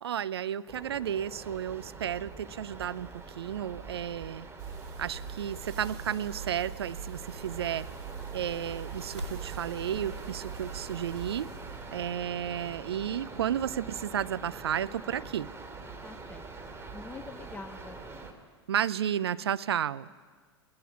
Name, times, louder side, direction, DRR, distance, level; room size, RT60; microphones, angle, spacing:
voice 1, 0.0-4.5 5.0-7.9 8.3-11.5 11.9-15.5 18.7-20.1, right 9 dB, 65° right, 16 dB, 0.6 m, -32 dB
sound 1, 0.7-18.3, right 3 dB, 20° right, 2.6 m, -45 dB
sound 2, 3.3-9.5, left 1 dB, 90° left, 1.3 m, -50 dB
sound 3, 4.6-12.2, right 5 dB, 50° right, 3.8 m, -43 dB
voice 2, 16.0-18.0, left 3 dB, 10° left, 7 dB, 1.0 m, -46 dB
21.0 x 18.5 x 9.6 m, 1.5 s
figure-of-eight pair, 90°, 14 cm